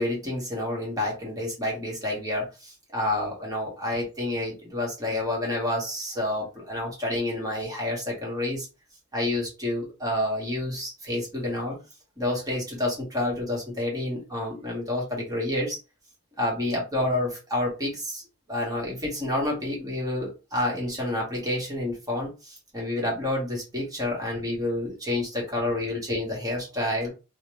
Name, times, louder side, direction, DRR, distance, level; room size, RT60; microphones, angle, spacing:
voice 1, 0.0-8.7 9.1-11.8 12.2-15.8 16.4-18.2 18.5-27.1, left 1 dB, 15° right, 1.2 m, -29 dB
2.9 x 2.1 x 3.1 m
head